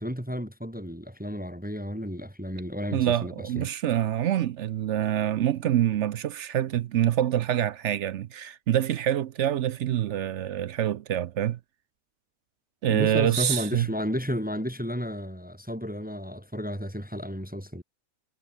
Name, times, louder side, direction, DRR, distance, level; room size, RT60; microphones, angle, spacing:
voice 1, 0.0-3.7 12.9-17.8, equal, 5° right, 2.0 m, -32 dB
voice 2, 2.9-11.6 12.8-13.9, right 11 dB, 65° right, 0.8 m, -26 dB
omnidirectional pair, 1.6 m